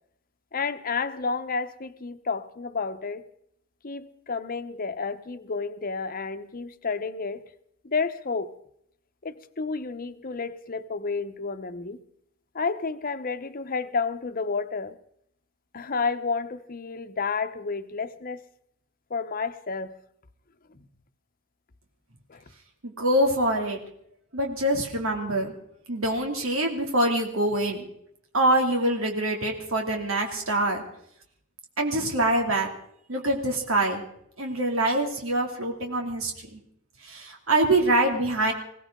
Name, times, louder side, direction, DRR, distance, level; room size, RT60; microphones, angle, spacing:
voice 1, 0.5-3.2 3.8-7.4 7.8-8.5 9.2-12.0 12.5-15.0 15.7-18.4 19.1-19.9 20.7-20.8 22.3-22.4, left 4 dB, 45° left, 0.9 m, -31 dB
voice 2, 22.8-23.8 24.3-25.5 25.9-27.9 28.3-30.8 31.8-32.7 33.1-34.0 34.4-36.6 37.0-38.5, right 1 dB, 90° right, 2.7 m, -25 dB
22.0 x 17.0 x 3.8 m
head